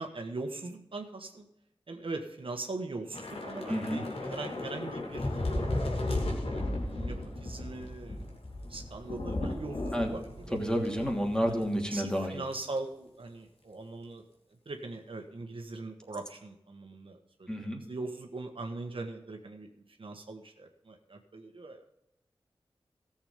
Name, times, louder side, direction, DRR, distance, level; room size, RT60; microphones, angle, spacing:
voice 1, 0.0-1.5 1.9-5.3 5.6-5.9 6.5-8.4 8.7-10.6 11.5-14.2 14.6-19.7 20.0-21.8, right 3 dB, 65° right, 4 dB, 1.5 m, -41 dB
Thunder / Rain, 3.1-11.7 12.0-12.2 12.5-12.8, left 1 dB, 80° left, 2.8 m, -35 dB
voice 2, 3.7-4.0 9.9-10.1 10.5-12.4 17.5-17.8, equal, 10° left, 1 dB, 2.8 m, -30 dB
14.0 x 7.3 x 5.2 m, 0.83 s
wide cardioid pair, 60°, 10 cm